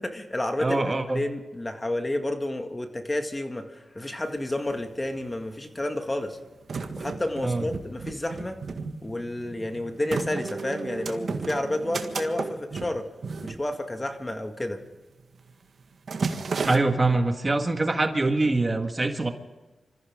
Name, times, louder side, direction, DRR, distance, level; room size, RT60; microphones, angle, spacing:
voice 1, 0.0-6.4 7.0-8.6 9.0-13.1 13.4-14.8, left 1 dB, 20° left, 5 dB, 2.0 m, -30 dB
voice 2, 0.6-1.2 7.4-7.7 16.6-19.3, right 2 dB, 30° right, 5 dB, 1.8 m, -24 dB
sound 1, 4.3-4.4 4.5-5.4 6.0-14.3 14.6-14.9 15.2-15.5 15.8-16.8, right 4 dB, 60° right, 1.7 m, -34 dB
26.5 x 14.5 x 3.7 m, 1.3 s
cardioid pair, 65°, 0 cm